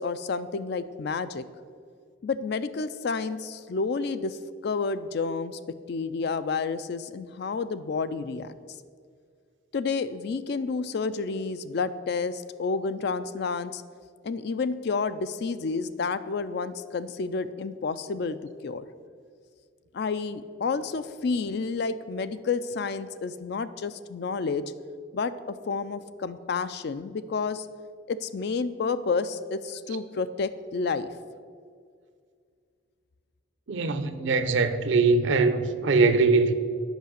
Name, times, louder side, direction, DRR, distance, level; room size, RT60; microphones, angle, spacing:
voice 1, 0.0-1.4 2.2-4.4 4.6-5.6 5.9-8.5 9.7-13.8 14.2-18.4 18.6-18.9 19.9-24.6 25.1-27.7 28.1-31.1, left 4 dB, 55° left, 0.4 m, -30 dB
voice 2, 33.7-36.5, right 3 dB, 70° right, 0.6 m, -22 dB
8.1 x 5.9 x 6.4 m
head